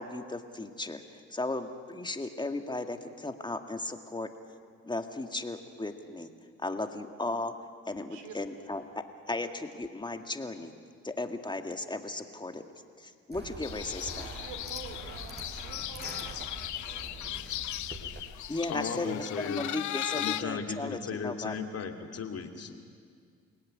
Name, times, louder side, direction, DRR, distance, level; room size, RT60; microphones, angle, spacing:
voice 1, 0.0-4.3 4.8-6.3 6.6-7.5 7.9-10.7 11.0-12.6 13.0-14.3 18.5-21.6, left 2 dB, 15° left, 6 dB, 1.9 m, -36 dB
sound 1, 13.3-18.7, right 2 dB, 35° right, 5.5 m, -44 dB
sound 2, 13.6-20.4, left 13 dB, 75° left, 0.8 m, -38 dB
voice 2, 14.3-16.2, right 5 dB, 90° right, 6 dB, 3.4 m, -47 dB
voice 3, 18.7-19.7 20.1-22.9, left 6 dB, 55° left, 5 dB, 2.7 m, -36 dB
30.0 x 18.0 x 9.8 m, 2.1 s
cardioid pair, 90°, 30 cm